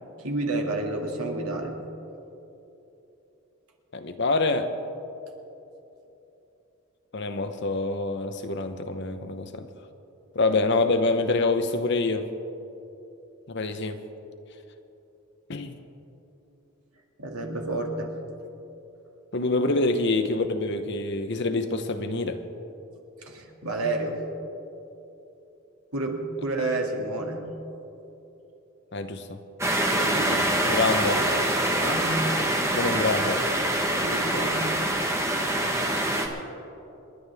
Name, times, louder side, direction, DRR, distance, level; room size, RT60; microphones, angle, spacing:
voice 1, 0.2-1.8 17.2-18.2 23.2-24.2 25.9-27.5 29.8-30.4 31.8-32.3 34.0-34.8, right 2 dB, 85° right, 1 dB, 2.1 m, -30 dB
voice 2, 3.9-4.7 7.1-9.7 10.3-12.3 13.5-14.0 15.5-15.8 19.3-22.4 28.9-29.4 30.3-30.4 30.7-31.3 32.7-33.4, left 3 dB, 55° left, 8 dB, 0.9 m, -26 dB
sound 1, 29.6-36.3, right 1 dB, 15° right, 1.1 m, -25 dB
28.5 x 11.0 x 3.5 m, 3.0 s
head